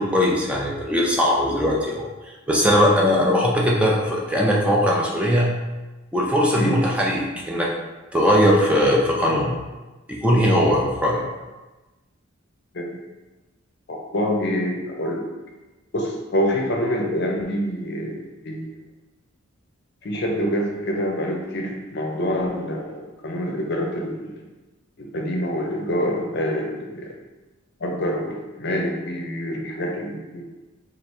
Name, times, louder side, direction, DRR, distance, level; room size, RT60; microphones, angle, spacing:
voice 1, 0.0-2.0 2.5-5.5 6.1-7.7 8.1-9.6 10.1-11.2, equal, 5° right, -3 dB, 0.4 m, -19 dB
voice 2, 13.9-15.3 15.9-18.7 20.0-24.3 25.0-27.1 27.8-30.4, equal, 55° left, 1 dB, 0.6 m, -26 dB
3.2 x 2.4 x 4.2 m, 1.2 s
head